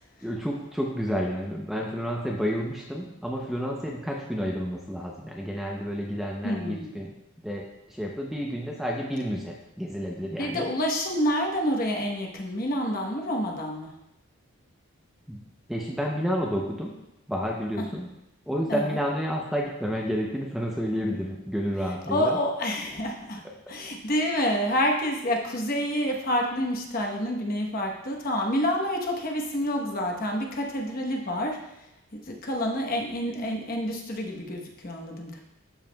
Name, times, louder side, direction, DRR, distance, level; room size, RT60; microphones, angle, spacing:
voice 1, 0.2-7.1 7.4-10.7 15.3-15.4 15.7-16.9 17.3-18.1 18.5-22.4, equal, ahead, -1 dB, 0.5 m, -30 dB
voice 2, 6.4-7.0 10.4-13.9 17.8-18.0 18.7-19.0 22.1-23.4 23.7-31.6 32.1-35.4, equal, 40° left, 1 dB, 1.0 m, -28 dB
12.5 x 4.8 x 2.2 m, 0.87 s
head